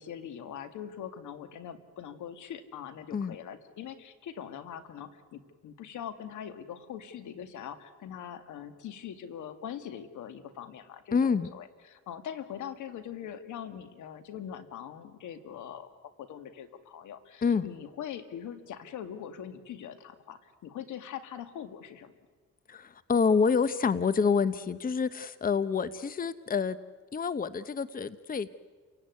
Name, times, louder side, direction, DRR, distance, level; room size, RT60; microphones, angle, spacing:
voice 1, 0.0-22.1, left 9 dB, 80° left, 9 dB, 2.1 m, -42 dB
voice 2, 11.1-11.5 17.4-17.7 22.7-26.8 27.1-28.5, left 5 dB, 30° left, 14 dB, 0.9 m, -27 dB
30.0 x 17.0 x 9.5 m, 1.5 s
cardioid pair, 90°, 30 cm